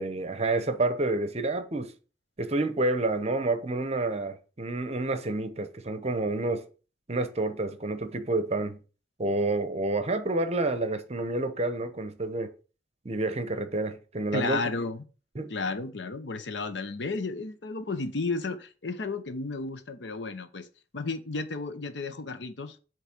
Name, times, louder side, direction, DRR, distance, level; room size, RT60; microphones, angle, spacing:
voice 1, 0.0-1.9 2.4-6.6 7.1-8.8 9.2-12.5 13.0-14.6 15.3-15.5, right 2 dB, 35° right, 0.8 m, -29 dB
voice 2, 14.3-15.0 15.5-20.7 20.9-22.8, left 3 dB, 70° left, 0.8 m, -33 dB
8.2 x 3.2 x 5.9 m
head